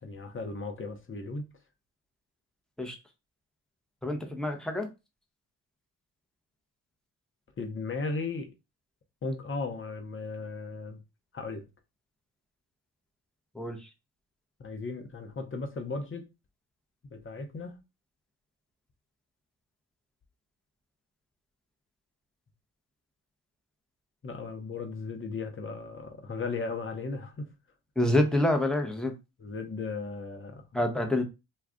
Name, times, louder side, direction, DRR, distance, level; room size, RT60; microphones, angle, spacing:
voice 1, 0.0-1.5 7.6-8.5 9.2-11.0 11.3-11.6 14.6-16.2 17.1-17.8 24.2-27.5 29.4-30.6, left 3 dB, 25° left, 0.9 m, -36 dB
voice 2, 4.0-4.9 13.5-13.8 28.0-29.1 30.7-31.2, left 1 dB, ahead, 0.9 m, -27 dB
2.4 x 2.3 x 3.6 m
hypercardioid pair, 50°, 45 cm